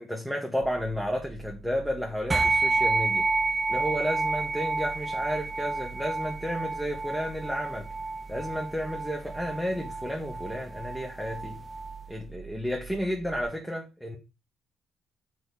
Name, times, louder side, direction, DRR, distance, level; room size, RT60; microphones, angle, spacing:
voice 1, 0.0-3.3 3.7-7.9 8.3-11.6 12.1-14.2, equal, ahead, 1.3 m, -32 dB
sound 1, 0.6-13.5, right 6 dB, 50° right, 1.0 m, -46 dB
sound 2, 2.3-12.0, right 3 dB, 25° right, 0.8 m, -30 dB
6.4 x 4.8 x 4.1 m
cardioid pair, 90°, 0 cm